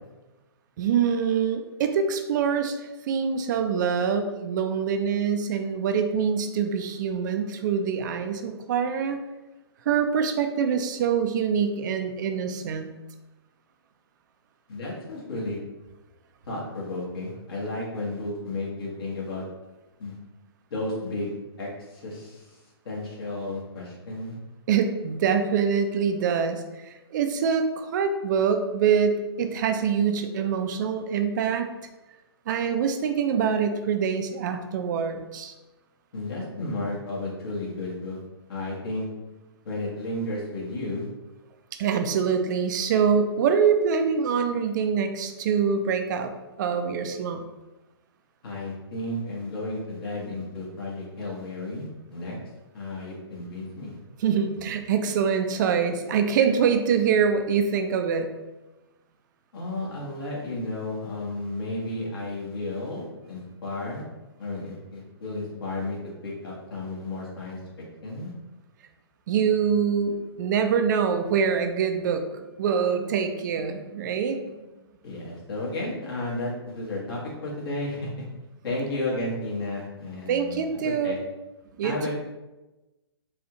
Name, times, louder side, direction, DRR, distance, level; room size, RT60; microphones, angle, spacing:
voice 1, 0.8-9.2 9.9-12.9 24.7-31.7 32.5-35.5 41.7-46.3 46.6-47.4 54.2-58.3 69.3-74.6 80.3-81.1 81.8-82.0, right 6 dB, 45° right, 7 dB, 0.4 m, -25 dB
voice 2, 14.7-15.6 16.4-19.4 20.0-20.2 20.7-22.6 22.8-24.4 36.1-38.2 38.5-39.1 39.6-41.1 48.4-52.4 52.7-54.0 59.5-64.0 64.4-66.0 66.2-67.6 68.0-68.3 75.0-78.1 78.6-81.2 81.8-82.1, left 2 dB, 60° left, -5 dB, 1.4 m, -33 dB
4.1 x 2.4 x 2.8 m, 1.1 s
hypercardioid pair, 130°, 14 cm